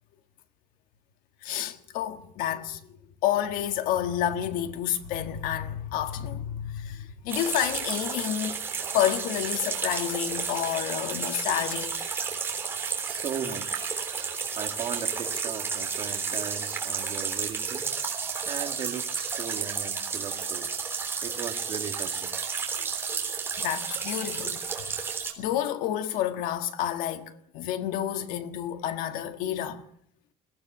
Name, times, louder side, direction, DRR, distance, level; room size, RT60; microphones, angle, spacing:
voice 1, 1.4-2.8 3.2-8.6 8.9-12.1 23.6-25.0 25.4-29.8, left 11 dB, 75° left, 1.6 m, -29 dB
sound 1, 7.3-25.3, right 5 dB, 15° right, 3.5 m, -32 dB
voice 2, 13.1-13.9 14.6-17.9 18.1-20.7 21.2-22.4, right 8 dB, 40° right, 2.0 m, -37 dB
21.5 x 16.5 x 7.9 m
cardioid pair, 175°, 14 cm